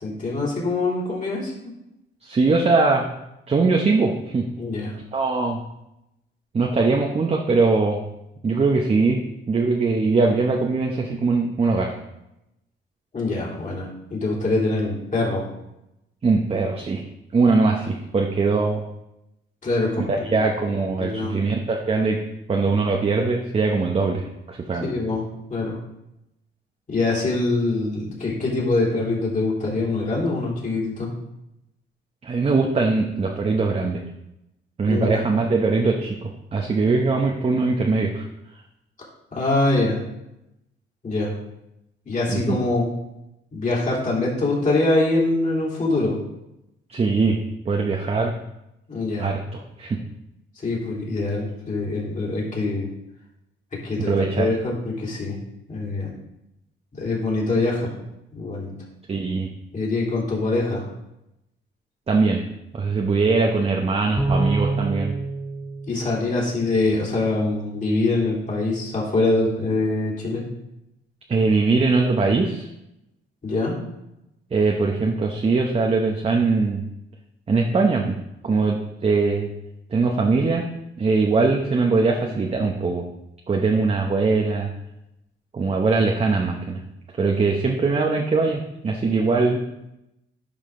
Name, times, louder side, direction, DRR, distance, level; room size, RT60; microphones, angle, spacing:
voice 1, 0.0-1.5 4.6-4.9 13.1-15.4 19.6-20.5 21.0-21.4 24.8-25.8 26.9-31.1 34.9-35.2 39.3-40.0 41.0-41.3 42.1-42.9 43.5-46.2 48.9-49.3 50.6-52.9 53.7-55.4 55.7-56.1 56.9-57.9 58.3-58.7 59.7-60.8 65.9-70.4 73.4-73.8, left 2 dB, 40° left, -5 dB, 3.4 m, -24 dB
voice 2, 2.2-3.1 3.5-4.4 5.1-5.6 6.5-8.0 8.4-9.2 9.5-11.9 16.2-17.0 17.3-18.8 20.0-22.2 22.5-24.9 32.2-34.0 34.8-38.3 42.3-42.6 46.9-47.4 47.6-48.3 49.2-49.4 49.8-50.0 54.0-54.5 59.1-59.5 62.1-62.4 62.7-65.1 71.3-72.7 74.5-76.8 77.5-78.2 78.4-79.5 79.9-80.7 81.0-83.0 83.5-84.7 85.5-86.8 87.2-89.6, right 3 dB, 30° right, 1 dB, 0.9 m, -21 dB
Bowed string instrument, 64.2-66.8, right 2 dB, 5° right, 0.8 m, -26 dB
10.5 x 5.0 x 3.7 m, 0.87 s
cardioid pair, 90°, 20 cm